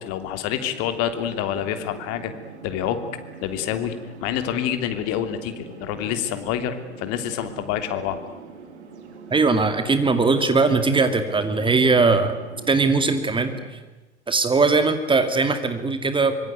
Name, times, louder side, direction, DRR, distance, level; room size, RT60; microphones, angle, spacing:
voice 1, 0.0-2.3 2.6-3.0 3.4-3.9 4.2-8.2, left 10 dB, 45° left, 8 dB, 3.1 m, -27 dB
sound 1, 0.6-13.7, right 5 dB, 70° right, 4.0 m, -42 dB
voice 2, 9.3-12.4 12.7-13.5 14.3-16.5, right 3 dB, 15° right, 9 dB, 2.3 m, -20 dB
25.5 x 24.0 x 9.5 m, 1.1 s
figure-of-eight pair, 85°, 36 cm